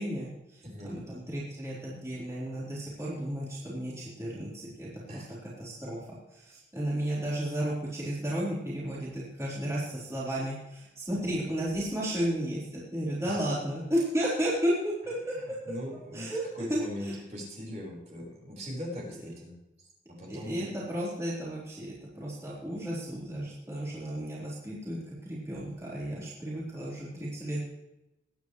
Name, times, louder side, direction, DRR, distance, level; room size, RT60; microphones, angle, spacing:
voice 1, 0.0-6.0 6.3-15.1 16.1-16.4 16.7-17.2 20.3-27.6, equal, 15° right, -8 dB, 4.0 m, -33 dB
voice 2, 0.6-1.0 5.1-5.3 13.3-13.4 15.3-16.3 16.5-20.7, equal, 40° right, -3 dB, 4.7 m, -41 dB
21.5 x 9.7 x 3.2 m, 0.93 s
head